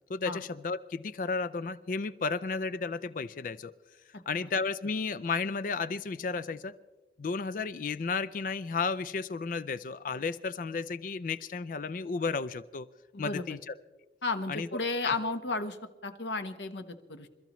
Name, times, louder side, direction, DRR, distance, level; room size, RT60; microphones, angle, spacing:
voice 1, 0.1-3.7 4.3-6.7 7.2-12.9 13.2-13.7 14.5-14.7 15.0-15.1, left 4 dB, 50° left, 15 dB, 0.4 m, -33 dB
voice 2, 13.1-13.6 14.2-15.8 16.0-17.3, left 3 dB, 85° left, 8 dB, 1.1 m, -33 dB
27.5 x 13.5 x 3.1 m, 1.2 s
head